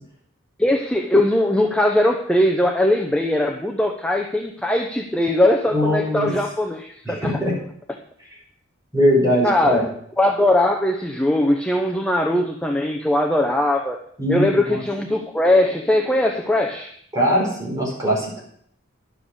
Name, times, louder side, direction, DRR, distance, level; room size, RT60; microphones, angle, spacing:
voice 1, 0.6-7.4 9.4-9.9 10.2-14.0 14.3-16.9, left 1 dB, 5° left, 2 dB, 0.7 m, -20 dB
voice 2, 5.7-6.3 7.0-7.6 8.9-9.8 14.2-14.8 17.1-18.4, equal, 15° right, -3 dB, 4.9 m, -21 dB
11.5 x 7.6 x 6.4 m, 0.65 s
head